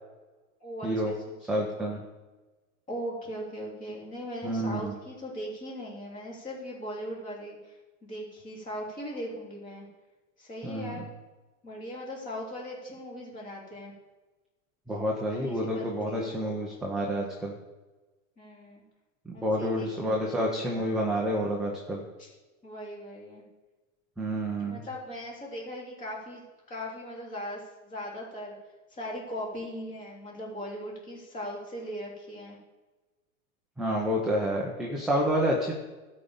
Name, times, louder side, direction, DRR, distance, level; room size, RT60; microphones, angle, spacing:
voice 1, 0.6-1.6 2.9-9.9 10.4-11.1 11.6-13.9 15.3-16.4 18.4-18.8 19.3-19.9 20.1-21.2 22.2-22.3 22.6-23.4 24.6-26.4 26.7-28.5 28.9-32.6, equal, 20° left, -4 dB, 3.3 m, -39 dB
voice 2, 1.5-2.0 4.4-4.9 10.6-11.1 14.9-17.6 19.3-22.0 24.2-24.8 33.8-35.7, equal, ahead, -3 dB, 0.7 m, -29 dB
12.5 x 5.4 x 7.1 m, 1.2 s
supercardioid pair, 160°, 40 cm